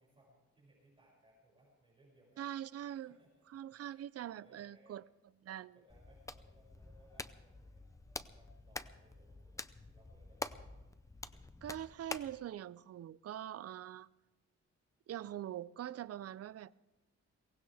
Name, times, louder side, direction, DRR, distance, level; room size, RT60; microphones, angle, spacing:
voice 1, 0.0-2.5 3.0-3.4 3.7-4.0 4.3-5.0 5.5-7.9 8.3-9.6 9.9-10.6, right 1 dB, 20° right, 6.3 m, -67 dB
voice 2, 2.4-3.2 3.5-5.1 5.4-5.7 11.6-14.1 15.1-16.7, right 11 dB, 55° right, 0.5 m, -43 dB
Hands, 5.9-12.4, left 2 dB, 10° left, 0.5 m, -47 dB
23.0 x 18.0 x 3.5 m
wide cardioid pair, 160°, 29 cm